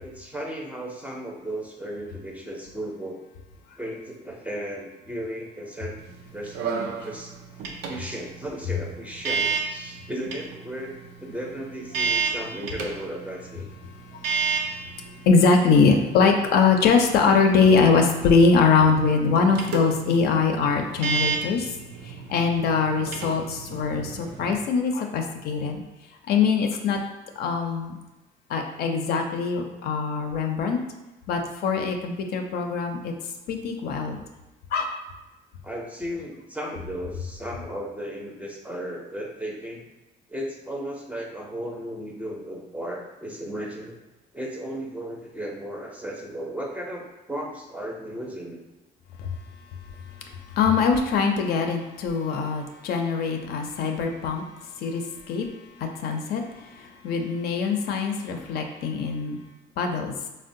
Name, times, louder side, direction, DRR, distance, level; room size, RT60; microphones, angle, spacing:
voice 1, 0.0-3.2 3.8-6.0 6.3-6.6 7.0-7.3 7.9-10.9 11.2-13.7 35.6-39.8 40.3-44.0 44.3-48.6, equal, 10° right, -1 dB, 0.5 m, -35 dB
sound 1, 6.0-24.5, right 5 dB, 90° right, 0.5 m, -33 dB
voice 2, 15.3-21.7 22.0-25.8 26.3-27.0 27.4-28.0 28.5-30.8 31.3-33.1 33.5-34.2 34.7-34.9 50.6-54.4 54.8-55.5 55.8-59.4 59.8-60.1, left 5 dB, 65° left, 3 dB, 0.4 m, -22 dB
3.6 x 2.1 x 2.5 m, 1.0 s
cardioid pair, 110°, 17 cm